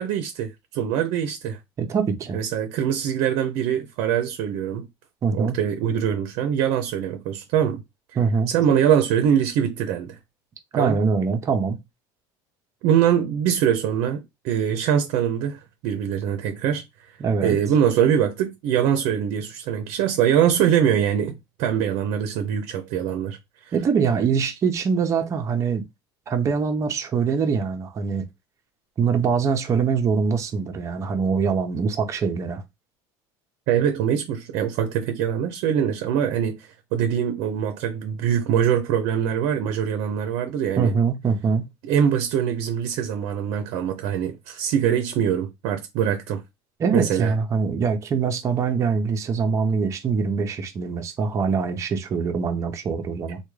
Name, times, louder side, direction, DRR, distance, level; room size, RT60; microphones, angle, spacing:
voice 1, 0.0-1.6 2.3-4.9 5.3-7.8 8.5-10.2 10.7-11.0 12.8-16.8 17.4-23.4 23.6-23.7 33.7-40.9 41.9-46.4 46.9-47.3, right 9 dB, 70° right, 0.6 m, -23 dB
voice 2, 1.8-2.4 5.2-5.6 8.2-8.5 10.7-11.8 17.2-17.6 23.7-25.8 26.3-28.3 29.0-32.6 40.8-41.7 46.8-53.4, right 5 dB, 30° right, 0.6 m, -23 dB
3.4 x 2.2 x 3.1 m
cardioid pair, 145°, 11 cm